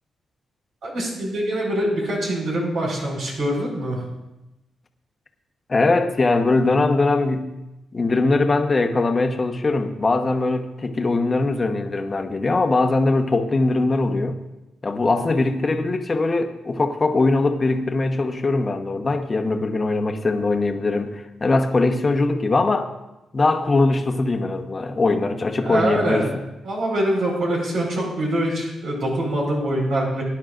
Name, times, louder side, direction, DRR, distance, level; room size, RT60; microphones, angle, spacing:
voice 1, 0.8-4.0 25.6-26.2 26.6-30.2, right 1 dB, 75° right, -2 dB, 4.5 m, -24 dB
voice 2, 5.7-7.5 7.9-14.4 14.8-22.9 23.3-26.3, left 3 dB, 30° left, 5 dB, 1.1 m, -21 dB
19.0 x 10.5 x 2.5 m, 0.96 s
cardioid pair, 110°, 0 cm